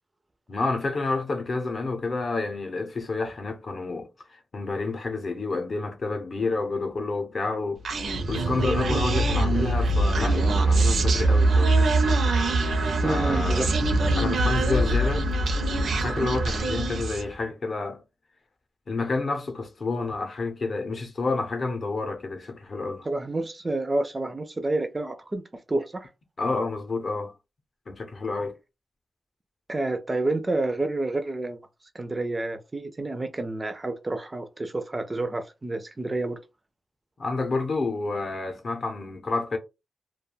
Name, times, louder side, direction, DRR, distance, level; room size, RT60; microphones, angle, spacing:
voice 1, 0.5-7.8 8.3-11.9 13.0-13.7 14.1-15.3 15.8-18.0 18.9-23.1 26.4-27.3 27.9-28.5 37.2-39.6, left 3 dB, 40° left, 0.5 m, -29 dB
Human voice, 7.8-17.3, right 2 dB, 80° right, 0.5 m, -23 dB
voice 2, 13.0-13.7 23.0-25.4 25.7-26.1 29.7-31.6 31.9-36.4, right 2 dB, 20° right, 0.3 m, -29 dB
2.2 x 2.2 x 3.1 m
wide cardioid pair, 145°, 0 cm